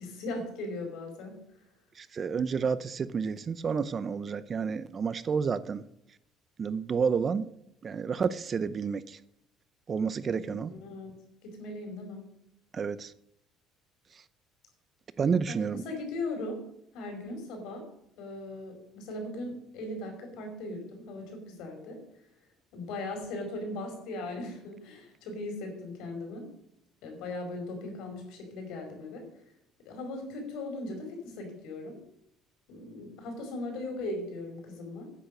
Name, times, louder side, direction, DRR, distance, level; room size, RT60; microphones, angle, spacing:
voice 1, 0.0-1.4 10.2-11.1 11.4-12.3 15.5-16.7 16.9-17.9 18.1-22.0 22.7-26.5 27.0-29.3 29.8-32.0 32.7-35.1, left 2 dB, 75° left, 5.1 m, -38 dB
voice 2, 2.0-5.8 6.6-7.5 7.8-9.2 9.9-10.7 12.7-13.1 15.2-15.8, right 6 dB, 30° right, 0.6 m, -30 dB
9.8 x 9.1 x 7.6 m
cardioid pair, 125°, 0 cm